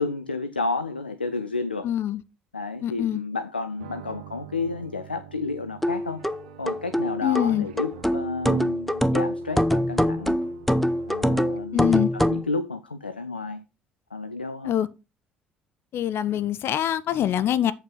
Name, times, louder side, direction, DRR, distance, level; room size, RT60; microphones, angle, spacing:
voice 1, 0.0-1.9 2.5-6.2 6.6-10.4 11.1-13.6 14.1-14.8, left 3 dB, 90° left, 0.4 m, -31 dB
voice 2, 1.8-2.2 2.8-3.2 7.2-7.7 11.7-12.1 14.6-14.9 15.9-17.7, left 11 dB, 50° left, 0.7 m, -24 dB
sound 1, 3.8-11.8, right 10 dB, 75° right, 0.9 m, -46 dB
sound 2, 5.8-12.5, equal, 5° left, 0.7 m, -24 dB
8.9 x 5.7 x 5.5 m
figure-of-eight pair, 50°, 5 cm